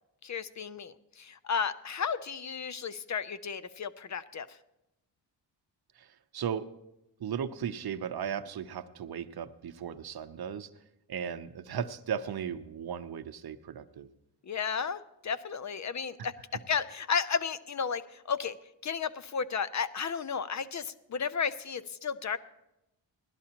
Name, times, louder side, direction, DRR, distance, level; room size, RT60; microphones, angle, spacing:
voice 1, 0.2-4.5 14.5-18.6 18.8-22.4, left 6 dB, 40° left, 15 dB, 0.5 m, -33 dB
voice 2, 6.3-6.7 7.2-10.7 11.1-14.1, right 8 dB, 55° right, 11 dB, 0.7 m, -36 dB
17.5 x 12.0 x 2.9 m, 0.88 s
cardioid pair, 70°, 44 cm